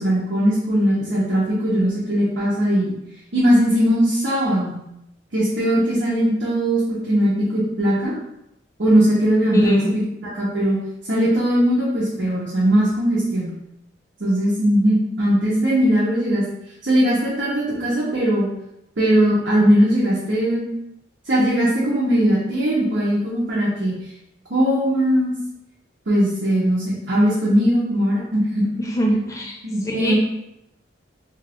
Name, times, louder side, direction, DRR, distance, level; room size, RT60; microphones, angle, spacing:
voice 1, 0.0-2.9 3.3-4.8 5.3-8.1 8.8-9.8 10.3-10.8 11.1-13.5 14.2-16.4 16.8-18.5 19.0-20.7 21.3-24.0 24.5-25.4 26.1-28.6 29.6-30.1, equal, 70° right, -8 dB, 0.8 m, -19 dB
voice 2, 9.5-10.0 28.8-30.1, equal, 15° left, 0 dB, 0.4 m, -23 dB
2.9 x 2.4 x 3.4 m, 0.84 s
head